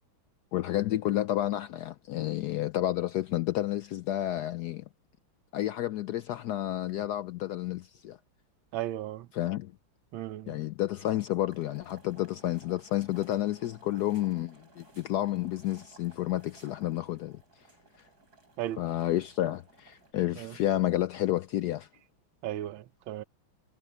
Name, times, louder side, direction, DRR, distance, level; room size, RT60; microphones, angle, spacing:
voice 1, 0.5-4.8 5.5-8.2 9.3-9.7 10.5-17.4 18.0-18.1 18.8-21.9, left 14 dB, 80° left, 0.8 m, -30 dB
voice 2, 8.7-9.3 10.1-10.6 18.6-18.8 20.4-20.5 22.4-23.2, right 13 dB, 75° right, 1.6 m, -35 dB
sound 1, 11.5-20.1, right 3 dB, 45° right, 8.0 m, -58 dB
omnidirectional pair, 2.3 m